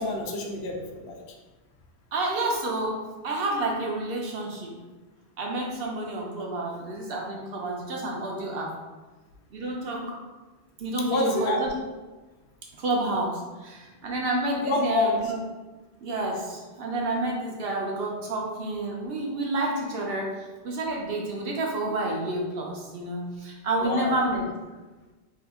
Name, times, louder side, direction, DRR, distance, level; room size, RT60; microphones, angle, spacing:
voice 1, 0.0-1.4 11.0-11.6 14.6-15.2 23.8-24.2, left 3 dB, 75° left, 2 dB, 0.8 m, -27 dB
voice 2, 2.1-3.0 3.2-4.8 5.4-8.7 9.5-10.1 10.8-11.7 12.8-15.4 16.0-24.5, right 2 dB, 65° right, -1 dB, 0.8 m, -29 dB
2.8 x 2.4 x 3.5 m, 1.2 s
omnidirectional pair, 1.2 m